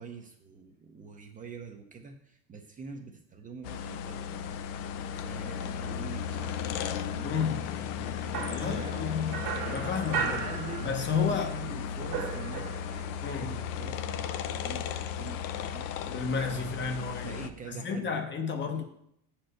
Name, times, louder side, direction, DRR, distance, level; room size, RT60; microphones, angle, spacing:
voice 1, 0.0-4.5 4.9-16.2 16.5-18.2 18.7-18.8, right 5 dB, 20° right, 0.6 m, -46 dB
sound 1, 3.6-17.5, left 8 dB, 85° left, 0.7 m, -35 dB
voice 2, 7.2-7.6 8.5-9.4 9.7-10.4 10.8-11.5 13.2-13.5 16.1-18.8, left 5 dB, 30° left, 0.8 m, -32 dB
sound 2, 8.3-11.4 11.6-13.1, right 7 dB, 70° right, 1.7 m, -36 dB
7.3 x 4.4 x 6.5 m
cardioid pair, 155°, 38 cm